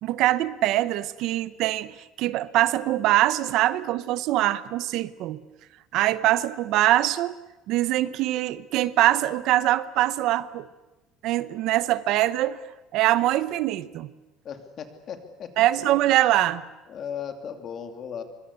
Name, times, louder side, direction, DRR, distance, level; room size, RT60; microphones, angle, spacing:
voice 1, 0.0-5.4 5.9-7.4 7.7-10.7 11.2-12.6 12.9-14.1 15.6-16.6, right 15 dB, 55° right, 16 dB, 0.8 m, -23 dB
voice 2, 14.4-15.5 16.9-18.2, left 8 dB, 35° left, 7 dB, 2.6 m, -36 dB
24.0 x 23.5 x 8.2 m, 1.0 s
cardioid pair, 165°, 0 cm